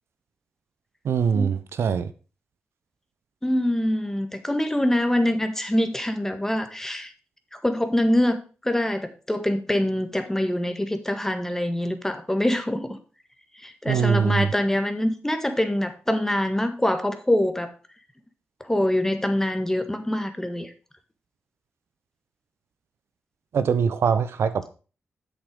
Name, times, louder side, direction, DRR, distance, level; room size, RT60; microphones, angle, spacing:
voice 1, 1.0-2.1 13.9-14.5 23.5-24.7, right 6 dB, 75° right, 0.8 m, -22 dB
voice 2, 3.4-7.1 7.5-12.9 13.6-17.7 18.6-20.7, left 1 dB, 10° left, 1.7 m, -24 dB
8.2 x 6.6 x 5.2 m
cardioid pair, 65°, 4 cm